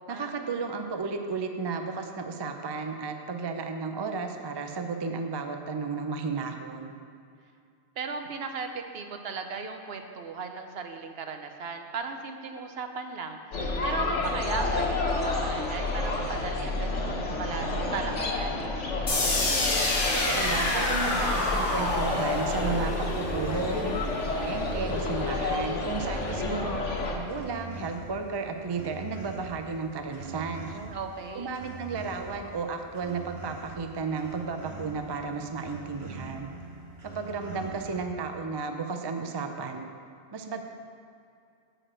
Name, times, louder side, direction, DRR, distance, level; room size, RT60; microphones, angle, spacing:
voice 1, 0.1-6.9 20.1-24.0 24.3-26.7 27.1-30.7 31.3-36.5 37.0-39.9 40.3-40.6, right 4 dB, 35° right, 5 dB, 0.4 m, -33 dB
voice 2, 8.0-13.4 13.8-18.7 26.2-26.7 30.7-31.5, right 5 dB, 60° right, 6 dB, 0.9 m, -37 dB
sound 1, 13.5-27.1, left 2 dB, 80° left, 1.5 m, -30 dB
sound 2, 19.1-25.0, left 2 dB, 50° left, 1.5 m, -29 dB
sound 3, 22.1-38.0, right 3 dB, 90° right, 2.0 m, -44 dB
8.8 x 5.1 x 7.5 m, 2.4 s
omnidirectional pair, 1.2 m